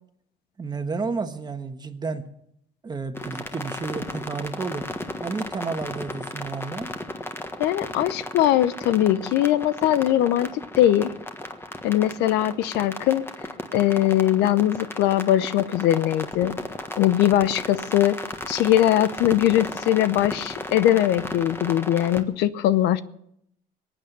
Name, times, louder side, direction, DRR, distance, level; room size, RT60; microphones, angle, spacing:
voice 1, 0.6-2.3 2.8-4.9 5.2-6.9, right 4 dB, 25° right, 7 dB, 1.4 m, -31 dB
sound 1, 3.1-22.2, left 1 dB, 15° left, 1.5 m, -35 dB
voice 2, 7.6-11.1 11.8-13.2 13.7-16.5 17.0-18.2 18.5-23.0, left 12 dB, 90° left, 15 dB, 0.8 m, -21 dB
22.0 x 9.0 x 6.7 m, 0.74 s
cardioid pair, 110°, 17 cm